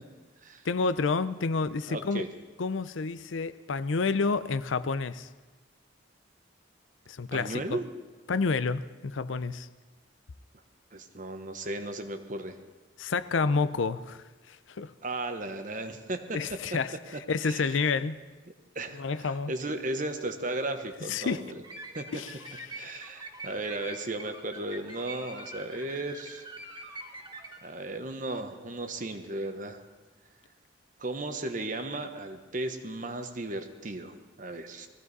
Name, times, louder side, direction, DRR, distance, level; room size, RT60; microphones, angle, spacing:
voice 1, 0.6-2.2 2.6-5.3 7.1-7.6 8.3-9.7 13.0-14.9 16.3-18.2 19.0-19.5 21.1-21.4 22.1-22.4 22.7-22.8, left 4 dB, 80° left, 0.5 m, -29 dB
voice 2, 1.9-2.3 7.3-7.8 10.9-12.6 15.0-16.6 17.1-17.8 18.7-21.6 21.9-22.1 22.8-26.4 27.6-29.8 31.0-34.9, right 2 dB, 40° right, 1.1 m, -35 dB
sound 1, 21.6-27.6, right 1 dB, 25° right, 1.7 m, -44 dB
20.5 x 15.0 x 4.1 m
head